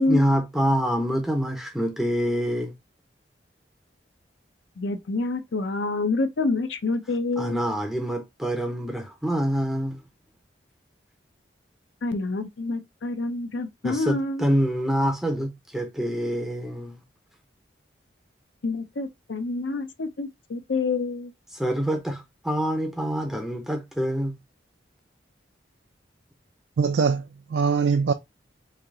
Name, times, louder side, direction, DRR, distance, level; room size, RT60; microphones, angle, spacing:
voice 1, 0.0-2.7 7.4-10.0 13.8-17.0 21.5-24.3, equal, ahead, 0.5 m, -26 dB
voice 2, 4.8-7.6 12.0-14.5 18.6-21.3, left 3 dB, 90° left, 0.6 m, -27 dB
voice 3, 26.8-28.1, right 5 dB, 75° right, 0.4 m, -22 dB
3.2 x 2.8 x 3.6 m
head